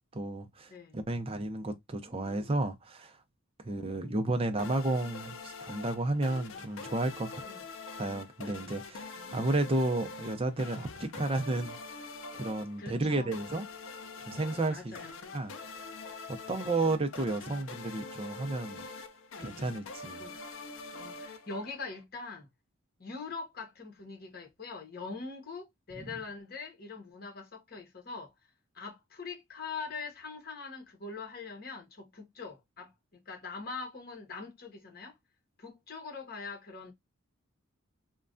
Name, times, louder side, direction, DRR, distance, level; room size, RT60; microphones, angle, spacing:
voice 1, 0.1-3.2 3.6-7.4 8.0-11.8 12.3-13.6 14.3-15.0 15.3-15.5 16.3-18.8 19.4-20.2, right 2 dB, 25° right, 0.5 m, -32 dB
voice 2, 2.0-2.6 3.7-4.3 7.4-7.6 9.2-9.8 12.8-13.3 14.7-15.1 16.7-16.8 20.2-20.4 20.9-22.5 23.0-28.3 28.7-35.2 35.6-36.9, left 4 dB, 45° left, 1.0 m, -43 dB
sound 1, 4.6-22.0, left 3 dB, 70° left, 0.5 m, -45 dB
3.2 x 2.2 x 2.4 m
head